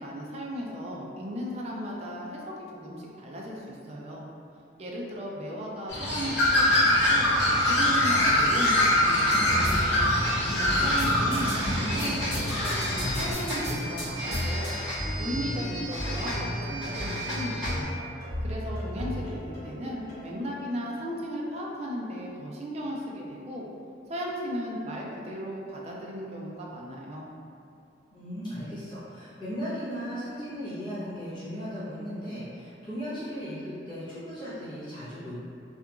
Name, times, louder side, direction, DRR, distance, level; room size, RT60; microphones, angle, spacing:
voice 1, 0.0-4.2 4.8-7.3 7.6-9.8 10.4-14.7 15.2-17.9 18.4-23.7 24.1-27.3, equal, 35° right, -3 dB, 0.3 m, -36 dB
Bird, 5.9-13.3, left 1 dB, 85° left, 0.7 m, -24 dB
sound 1, 6.3-17.8, equal, 5° right, 1.1 m, -35 dB
sound 2, 9.3-20.2, equal, 70° left, 1.3 m, -33 dB
voice 2, 10.7-11.2 28.1-35.4, equal, 25° left, -14 dB, 0.7 m, -37 dB
2.8 x 2.4 x 2.4 m, 2.5 s
head